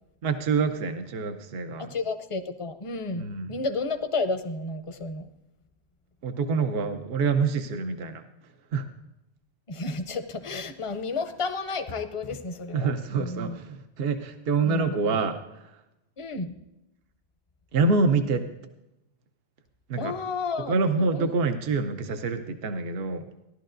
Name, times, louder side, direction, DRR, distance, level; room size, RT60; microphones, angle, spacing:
voice 1, 0.2-1.9 3.2-3.5 6.2-8.2 8.7-8.8 12.7-15.4 17.7-18.4 19.9-20.1 20.7-23.2, right 4 dB, 65° right, 8 dB, 0.9 m, -26 dB
voice 2, 1.8-5.3 9.7-13.6 14.6-15.2 16.2-16.5 20.0-20.8 21.1-21.3, left 3 dB, 35° left, 8 dB, 0.6 m, -32 dB
16.0 x 11.5 x 2.6 m, 0.92 s
omnidirectional pair, 1.1 m